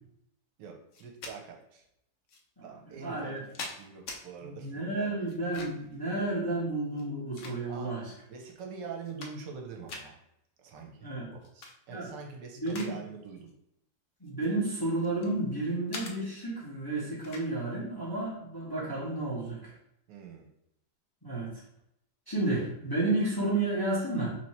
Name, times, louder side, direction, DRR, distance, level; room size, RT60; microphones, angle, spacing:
voice 1, 0.6-1.8 2.6-5.4 7.7-7.9 8.3-10.2 10.6-13.5 20.1-20.5, right 5 dB, 80° right, 2 dB, 1.4 m, -45 dB
sound 1, 0.9-1.4 2.3-2.4 3.1-4.2 5.3-5.9 6.9-8.0 8.5-8.6 8.9-9.6 9.9-10.1 11.4-11.7 12.2-13.0 13.2-13.5 14.3-15.4 15.9-16.2 17.2-17.5, left 3 dB, 60° left, 0.9 m, -43 dB
voice 2, 3.0-3.4 4.4-8.1 11.0-11.3 11.9-12.1 12.6-12.9 14.2-19.7 21.2-21.5 22.3-24.3, right 2 dB, 15° left, -7 dB, 0.9 m, -31 dB
3.1 x 3.0 x 4.2 m, 0.78 s
omnidirectional pair, 1.9 m